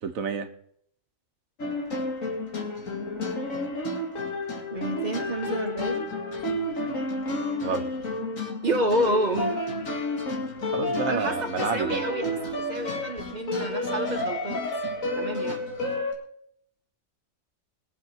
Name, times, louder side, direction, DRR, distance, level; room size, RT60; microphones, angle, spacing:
voice 1, 0.0-0.5 7.6-7.9 10.7-12.0, right 5 dB, 80° right, 7 dB, 1.5 m, -29 dB
sound 1, 1.6-16.1, left 2 dB, 70° left, 2.5 m, -30 dB
voice 2, 4.7-6.1 8.6-9.5 11.1-12.3 12.7-14.6 15.2-15.6, right 1 dB, 30° right, 3 dB, 2.2 m, -29 dB
22.0 x 7.4 x 4.5 m, 0.67 s
omnidirectional pair, 1.4 m